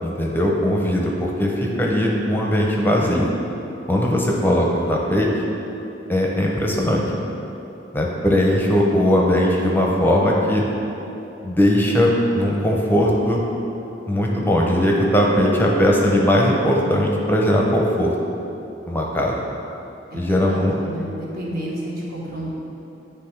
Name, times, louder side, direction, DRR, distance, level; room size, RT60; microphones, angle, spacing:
voice 1, 0.0-3.3 3.9-5.3 6.1-7.1 7.9-10.7 11.4-13.4 14.1-18.1 18.9-19.4 20.1-20.7, equal, 10° left, -2 dB, 0.6 m, -19 dB
voice 2, 20.1-22.5, right 1 dB, 55° right, -4 dB, 1.3 m, -31 dB
9.7 x 3.4 x 4.5 m, 2.9 s
head